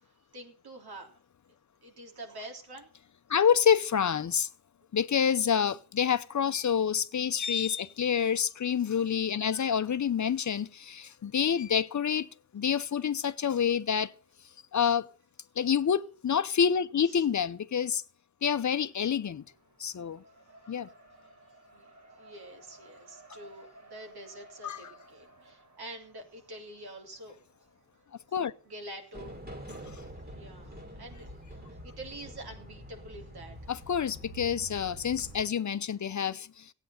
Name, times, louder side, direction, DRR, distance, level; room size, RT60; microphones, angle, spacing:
voice 1, 0.0-1.1 1.8-2.9 17.1-17.2 21.7-21.9 22.2-27.4 28.7-29.3 30.3-33.6, right 1 dB, 75° right, 3.6 m, -46 dB
voice 2, 3.3-4.5 4.9-12.3 12.5-14.1 14.7-15.0 15.6-18.0 18.4-19.4 19.8-20.2 20.7-20.9 24.6-24.9 28.3-28.5 33.7-36.5, left 7 dB, 50° left, 0.7 m, -27 dB
Race car auto racing, 18.5-29.5, right 2 dB, 45° right, 2.4 m, -57 dB
sound 1, 29.1-35.5, right 1 dB, 25° right, 2.6 m, -46 dB
16.0 x 9.0 x 6.5 m
wide cardioid pair, 95°, 38 cm